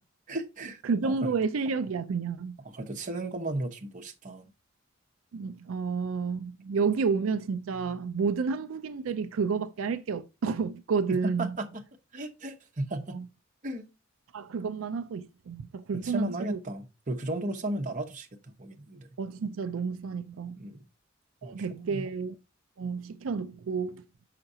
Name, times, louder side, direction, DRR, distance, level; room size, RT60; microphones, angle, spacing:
voice 1, 0.3-1.3 2.6-4.5 11.1-11.8 12.1-13.2 13.6-13.9 15.9-19.1 20.5-20.8 21.4-22.1, right 1 dB, 40° right, 1.0 m, -35 dB
voice 2, 0.8-2.6 5.3-11.6 13.1-13.3 14.3-16.6 19.2-20.7 21.4-22.4 22.8-24.0, right 5 dB, 85° right, 0.4 m, -30 dB
6.6 x 5.8 x 2.7 m
head